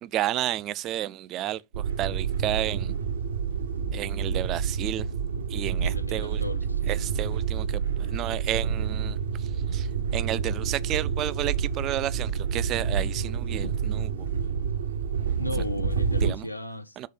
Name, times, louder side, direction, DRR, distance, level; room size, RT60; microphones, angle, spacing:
voice 1, 0.0-2.9 3.9-5.1 5.5-6.4 6.9-14.3 16.2-16.5 17.0-17.1, right 13 dB, 35° right, 0.4 m, -32 dB
sound 1, 1.7-16.3, right 6 dB, 70° right, 0.8 m, -28 dB
voice 2, 5.8-7.1 15.4-17.0, left 1 dB, 85° left, 0.5 m, -36 dB
5.6 x 3.3 x 5.1 m
figure-of-eight pair, 90°, 0 cm